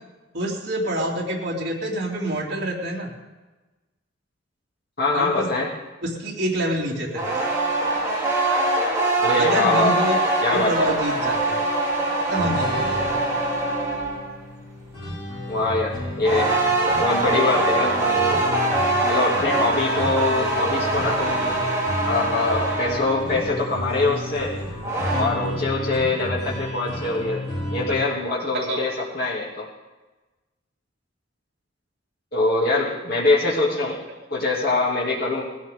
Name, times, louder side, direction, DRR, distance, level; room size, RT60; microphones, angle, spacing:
voice 1, 0.3-3.1 5.1-5.5 6.0-7.4 9.4-10.2 10.5-11.6 12.3-13.1 25.1-25.3 28.5-28.9 34.1-34.2, right 1 dB, 55° right, -4 dB, 3.0 m, -27 dB
voice 2, 5.0-5.7 9.2-10.0 10.4-10.9 15.5-16.5 17.0-18.4 19.1-21.6 22.0-24.5 25.2-27.4 27.7-28.9 29.2-29.7 32.3-34.0 34.3-35.5, left 2 dB, 55° left, -5 dB, 2.6 m, -23 dB
sound 1, 7.1-14.3 16.2-23.3 24.6-25.2, right 2 dB, 15° right, 3.0 m, -23 dB
sound 2, 12.4-28.0, left 1 dB, 30° left, 5.5 m, -32 dB
20.0 x 13.5 x 3.7 m, 1.2 s
head